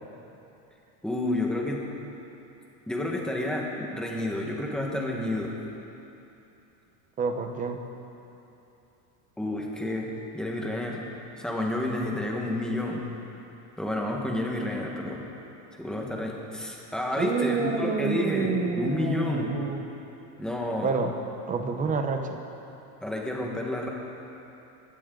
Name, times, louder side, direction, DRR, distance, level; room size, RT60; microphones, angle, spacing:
voice 1, 1.0-1.8 2.9-5.5 9.4-11.1 11.4-13.0 13.8-15.2 15.8-19.5 20.4-21.0 23.0-23.9, left 1 dB, ahead, -2 dB, 1.4 m, -30 dB
voice 2, 7.2-7.8 17.2-19.8 20.8-21.1 21.5-22.4, right 5 dB, 20° right, 5 dB, 0.8 m, -28 dB
22.5 x 15.0 x 3.9 m, 2.9 s
cardioid pair, 175°, 42 cm